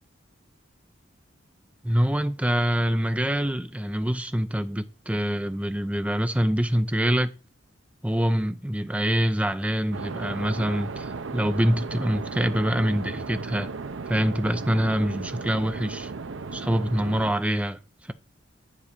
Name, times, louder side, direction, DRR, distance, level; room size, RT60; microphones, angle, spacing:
voice 1, 1.8-7.3 8.0-13.7 14.1-16.1 16.5-17.8, equal, 5° right, 0.5 m, -25 dB
sound 1, 9.9-17.3, right 4 dB, 75° right, 0.6 m, -35 dB
10.0 x 4.1 x 5.0 m
head